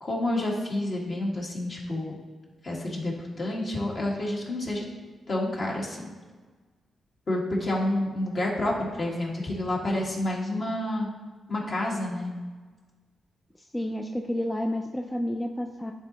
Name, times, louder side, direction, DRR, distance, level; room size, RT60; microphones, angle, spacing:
voice 1, 0.0-2.1 2.6-4.9 5.3-6.1 7.3-11.1 11.5-12.3, left 1 dB, 45° left, -2 dB, 1.7 m, -29 dB
voice 2, 13.6-15.9, left 1 dB, 10° left, 3 dB, 0.4 m, -30 dB
10.5 x 4.1 x 2.8 m, 1.4 s
cardioid pair, 80°, 0 cm